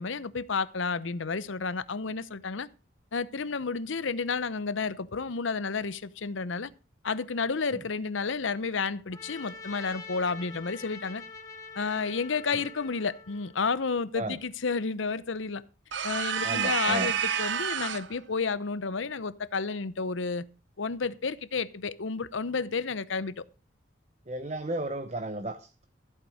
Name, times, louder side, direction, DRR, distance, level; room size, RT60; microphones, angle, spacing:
voice 1, 0.0-2.7 3.1-6.7 7.0-11.2 11.7-15.6 16.0-20.5 20.8-23.3, left 4 dB, 85° left, 0.8 m, -31 dB
Trumpet, 9.1-13.6, left 4 dB, 15° left, 1.7 m, -45 dB
sound 1, 15.9-18.2, right 8 dB, 70° right, 0.8 m, -29 dB
voice 2, 16.4-17.1 24.3-25.8, right 2 dB, 35° right, 0.8 m, -34 dB
14.5 x 8.3 x 4.8 m
head